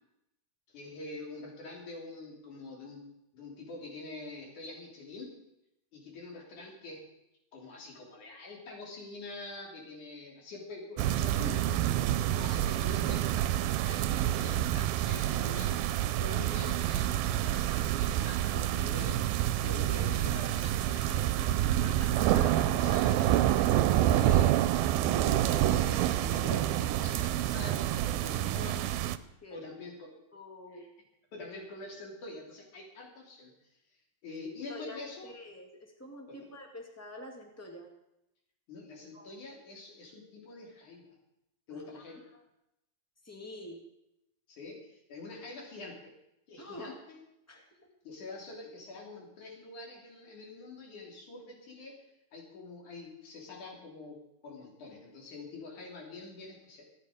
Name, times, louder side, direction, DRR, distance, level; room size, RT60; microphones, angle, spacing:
voice 1, 0.7-3.1 3.3-5.4 5.9-7.1 7.5-15.7 16.2-19.2 19.6-24.6 25.0-28.9 29.5-30.2 30.7-30.9 31.3-33.5 34.2-35.3 36.3-36.4 38.7-41.1 41.7-42.3 44.5-46.1 46.5-47.2 48.0-51.9 52.3-54.2 54.4-56.9, left 2 dB, 55° left, -1 dB, 4.7 m, -45 dB
sound 1, 11.0-29.2, right 13 dB, 90° right, 2.5 m, -28 dB
voice 2, 19.7-20.1 25.3-25.4 28.5-28.6 29.4-29.6 30.3-30.8 34.7-37.9 39.1-39.3 41.7-42.2 43.2-43.8 46.6-47.0 47.5-47.7, left 1 dB, 5° left, 1 dB, 1.2 m, -47 dB
24.5 x 8.8 x 5.1 m, 0.85 s
omnidirectional pair, 4.1 m